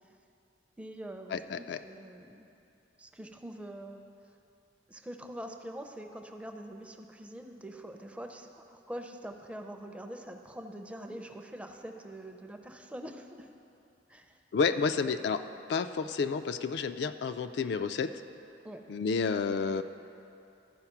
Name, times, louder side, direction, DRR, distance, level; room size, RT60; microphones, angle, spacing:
voice 1, 0.8-2.5 3.0-4.0 4.9-13.5 14.1-14.4 18.6-18.9, right 1 dB, 5° right, 5 dB, 0.4 m, -44 dB
voice 2, 1.3-1.8 14.5-15.4 15.7-18.1 18.9-19.8, left 5 dB, 65° left, 10 dB, 0.3 m, -30 dB
13.5 x 4.9 x 5.8 m, 2.8 s
head